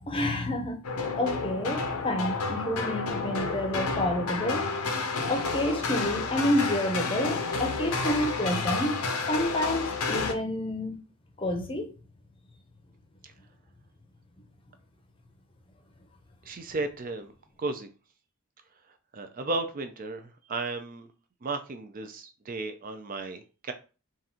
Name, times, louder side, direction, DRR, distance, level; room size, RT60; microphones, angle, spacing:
voice 1, 0.0-0.8 1.1-4.7 5.3-11.0 11.4-11.9, left 1 dB, 25° left, 0.7 m, -29 dB
sound 1, 0.8-10.3, left 4 dB, 90° left, 0.7 m, -30 dB
voice 2, 16.5-17.3 17.6-17.9 19.1-21.1 21.4-23.7, right 3 dB, 40° right, 0.4 m, -34 dB
3.9 x 2.5 x 4.2 m
head